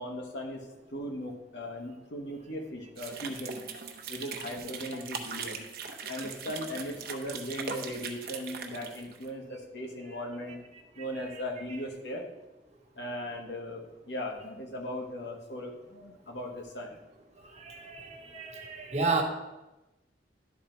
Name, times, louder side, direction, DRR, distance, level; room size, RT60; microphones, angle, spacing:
voice 1, 0.0-3.6 4.1-5.6 6.1-10.6 10.9-12.3 12.9-16.9, left 1 dB, 75° left, 2 dB, 1.4 m, -38 dB
sound 1, 3.0-9.3, right 5 dB, 60° right, 0.8 m, -40 dB
voice 2, 17.5-19.2, right 3 dB, 40° right, 2 dB, 1.1 m, -32 dB
11.0 x 3.9 x 4.4 m, 1.0 s
head